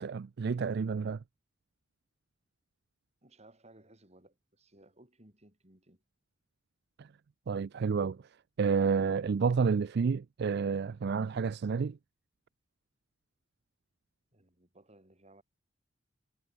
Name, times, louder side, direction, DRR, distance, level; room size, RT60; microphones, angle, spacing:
voice 1, 0.0-1.2 7.0-7.1 7.5-8.2 8.6-12.0, right 5 dB, 60° right, 0.4 m, -30 dB
voice 2, 3.2-6.0 14.3-15.4, right 1 dB, 35° right, 6.3 m, -60 dB
head